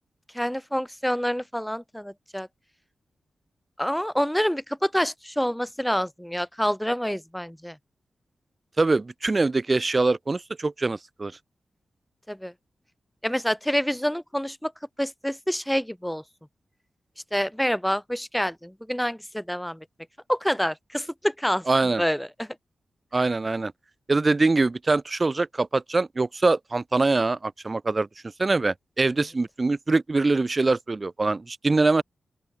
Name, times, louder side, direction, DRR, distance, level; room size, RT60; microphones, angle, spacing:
voice 1, 0.3-2.5 3.8-7.8 12.3-12.5 13.2-14.7 15.0-16.2 17.3-19.8 20.3-21.6 22.0-22.5, equal, ahead, 2.2 m, -27 dB
voice 2, 8.8-11.3 21.7-22.0 23.1-23.7 24.1-28.1 28.4-32.0, right 3 dB, 25° right, 0.3 m, -23 dB
open air
wide cardioid pair, 160°, 0 cm